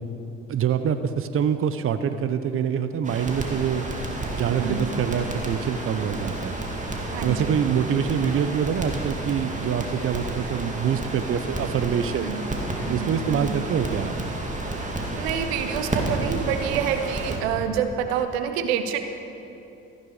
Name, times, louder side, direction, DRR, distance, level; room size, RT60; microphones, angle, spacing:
voice 1, 0.5-3.8 4.3-6.6 7.2-12.3 12.9-14.1, right 8 dB, 45° right, 11 dB, 0.8 m, -25 dB
Crackle, 3.0-17.4, right 2 dB, 25° right, 2.5 m, -31 dB
voice 2, 4.4-4.9 7.1-7.5 12.2-12.4 12.9-13.5 15.1-19.0, right 8 dB, 80° right, 8 dB, 0.9 m, -27 dB
14.5 x 12.5 x 4.9 m, 2.7 s
hypercardioid pair, 55°, 31 cm